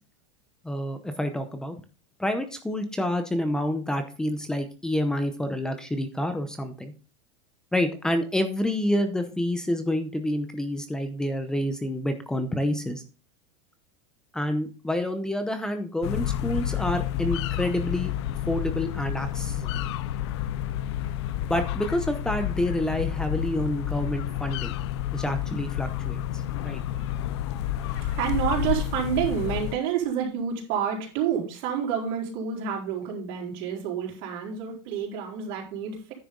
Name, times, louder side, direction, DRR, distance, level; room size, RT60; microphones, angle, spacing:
voice 1, 0.6-1.8 2.2-6.9 7.7-13.0 14.3-18.1 18.5-19.8 21.5-24.8 25.1-26.8, left 1 dB, 5° left, 8 dB, 0.7 m, -28 dB
sound 1, 16.0-29.7, left 12 dB, 70° left, 0.5 m, -30 dB
voice 2, 26.6-27.0 27.8-36.0, right 8 dB, 50° right, -1 dB, 3.8 m, -29 dB
10.0 x 6.6 x 3.8 m, 0.35 s
supercardioid pair, 165°, 15 cm